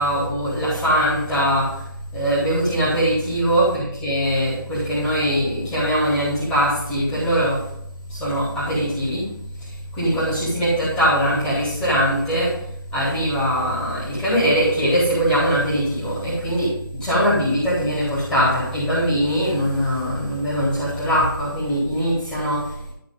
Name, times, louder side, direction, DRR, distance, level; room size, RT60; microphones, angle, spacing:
voice 1, 0.0-1.8 2.1-7.7 8.1-9.3 9.6-12.6 12.9-22.9, equal, 5° left, -12 dB, 3.9 m, -21 dB
14.0 x 6.1 x 3.8 m, 0.73 s
figure-of-eight pair, 160°, 12 cm